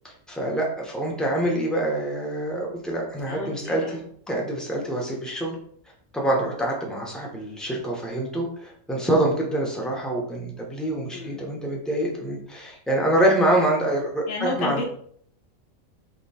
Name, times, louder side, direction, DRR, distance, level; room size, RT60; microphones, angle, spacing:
voice 1, 0.0-5.6 6.1-14.8, right 1 dB, ahead, -2 dB, 0.7 m, -26 dB
voice 2, 3.3-4.0 11.1-11.4 14.3-14.8, left 3 dB, 50° left, -1 dB, 1.0 m, -31 dB
3.7 x 2.8 x 4.2 m, 0.63 s
omnidirectional pair, 1.4 m